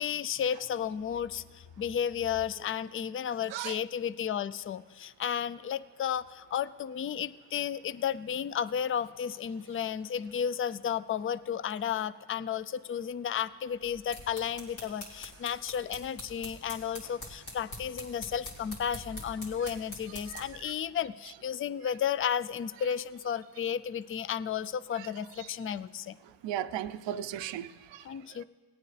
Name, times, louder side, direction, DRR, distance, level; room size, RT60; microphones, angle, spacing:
voice 1, 0.0-26.1 28.0-28.4, left 8 dB, 30° left, 0.4 m, -33 dB
sound 1, 13.8-20.6, equal, 85° left, 2.8 m, -45 dB
voice 2, 26.4-28.1 28.3-28.4, right 11 dB, 75° right, 0.6 m, -36 dB
18.0 x 9.1 x 3.3 m
supercardioid pair, 50°, 44 cm